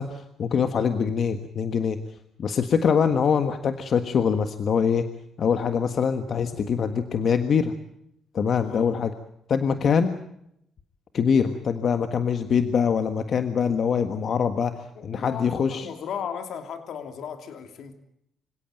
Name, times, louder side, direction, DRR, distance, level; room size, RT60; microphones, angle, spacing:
voice 1, 0.0-2.0 2.4-5.0 5.4-7.7 8.3-9.1 9.5-10.2 11.1-15.9, left 6 dB, 55° left, 9 dB, 1.4 m, -24 dB
voice 2, 8.6-8.9 14.7-17.9, left 7 dB, 70° left, 7 dB, 2.8 m, -36 dB
26.0 x 17.0 x 9.1 m, 0.76 s
cardioid pair, 90°, 0 cm